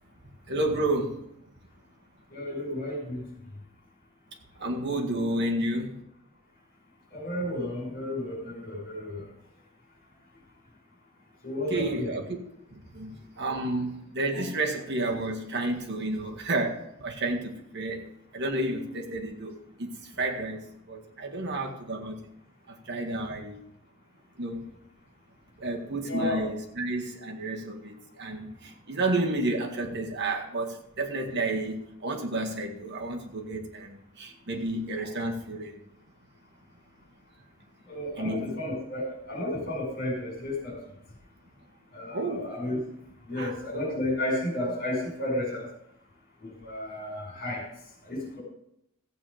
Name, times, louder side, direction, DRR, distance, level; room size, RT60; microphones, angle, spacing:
voice 1, 0.5-1.3 4.6-6.0 11.7-12.4 12.7-18.0 18.3-20.6 20.9-22.3 22.7-23.6 24.4-24.7 25.6-35.8 38.2-38.5 42.1-42.5 43.3-43.6, right 2 dB, 50° right, 1 dB, 1.9 m, -31 dB
voice 2, 2.3-3.3 7.1-9.3 11.4-12.1 26.1-26.5 28.6-28.7 35.0-35.1 37.8-40.8 41.9-42.8 43.3-45.7 46.4-47.7 48.0-48.4, left 1 dB, 45° left, -1 dB, 5.0 m, -32 dB
14.5 x 7.9 x 5.1 m, 0.79 s
head